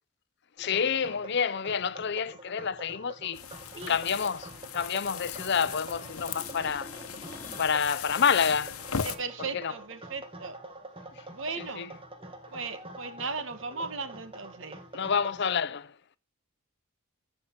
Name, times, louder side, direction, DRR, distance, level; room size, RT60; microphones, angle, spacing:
voice 1, 0.6-3.4 3.9-6.9 7.6-8.8 9.5-9.7 11.1-11.2 11.6-11.9 14.9-16.0, left 6 dB, 50° left, 0.6 m, -28 dB
sound 1, 0.6-15.5, right 2 dB, 25° right, 1.5 m, -46 dB
sound 2, 3.3-9.2, left 7 dB, 85° left, 1.0 m, -38 dB
sound 3, 3.6-5.7 5.9-7.9 13.6-13.7, equal, 10° left, 2.0 m, -51 dB
voice 2, 9.0-10.6 11.3-11.8 12.5-14.8, right 4 dB, 60° right, 1.4 m, -37 dB
14.5 x 5.5 x 4.5 m
head